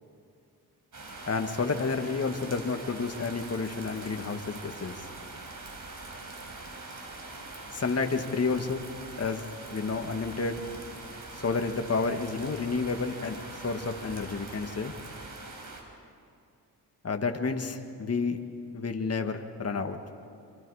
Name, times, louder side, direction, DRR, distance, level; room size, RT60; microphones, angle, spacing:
sound 1, 0.9-15.8, right 2 dB, 50° right, 4.9 m, -43 dB
voice 1, 1.3-5.1 7.7-8.9 9.2-9.4 9.7-10.6 11.3-13.4 13.6-14.9 17.0-18.4 18.7-20.0, left 4 dB, 40° left, 5 dB, 1.9 m, -30 dB
27.5 x 26.0 x 5.0 m, 2.5 s
cardioid pair, 75°, 40 cm